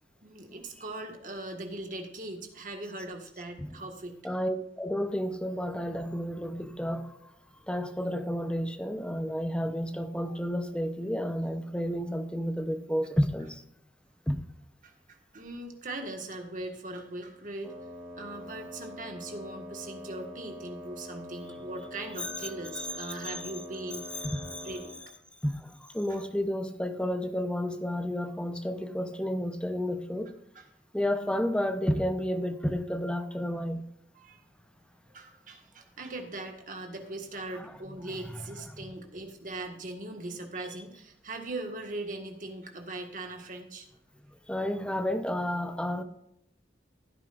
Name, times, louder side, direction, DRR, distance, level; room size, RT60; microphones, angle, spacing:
voice 1, 0.2-4.2 14.8-17.8 18.1-24.2 24.6-25.0 26.1-26.2 30.5-30.6 34.1-34.4 35.1-43.9, right 2 dB, 50° right, 1.7 m, -40 dB
voice 2, 4.2-7.2 7.7-13.6 14.3-14.4 22.2-23.4 24.2-24.7 25.4-30.3 30.9-33.8 37.5-37.7 38.3-38.4 44.5-46.0, equal, 5° left, 0.8 m, -31 dB
Wind instrument woodwind instrument, 17.6-25.0, left 1 dB, 10° right, 3.7 m, -44 dB
15.5 x 9.3 x 2.6 m
head